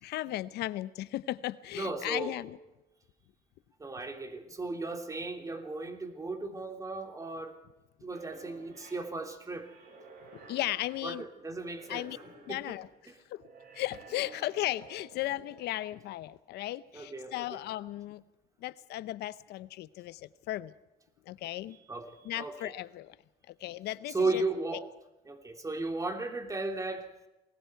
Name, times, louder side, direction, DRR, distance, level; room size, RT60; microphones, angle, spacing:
voice 1, 0.0-2.6 10.5-11.3 11.9-12.2 12.5-13.5 13.7-18.2 18.6-20.7 21.3-21.8 22.2-23.2 23.5-24.4 24.7-24.8, left 15 dB, 80° left, 16 dB, 0.8 m, -36 dB
voice 2, 1.7-2.3 3.8-7.6 8.0-9.7 11.0-12.8 16.9-17.6 21.9-22.7 24.1-24.9 25.3-27.1, right 3 dB, 20° right, 4 dB, 3.1 m, -36 dB
sound 1, 8.1-15.7, right 3 dB, 65° right, 6.4 m, -54 dB
28.5 x 20.5 x 4.6 m, 1.0 s
cardioid pair, 110°, 17 cm